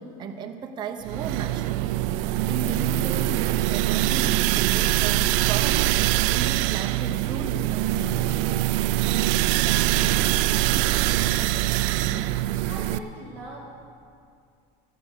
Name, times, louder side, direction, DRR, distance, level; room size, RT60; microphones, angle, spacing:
voice 1, 0.0-2.0 2.5-5.9 6.3-8.2, right 5 dB, 25° right, 3 dB, 0.8 m, -35 dB
sound 1, 1.1-13.0, right 14 dB, 80° right, 0.5 m, -23 dB
voice 2, 9.3-10.2 10.5-12.3 12.7-13.6, right 2 dB, 10° left, -7 dB, 3.0 m, -42 dB
13.0 x 9.7 x 7.3 m, 2.3 s
cardioid pair, 155°, 16 cm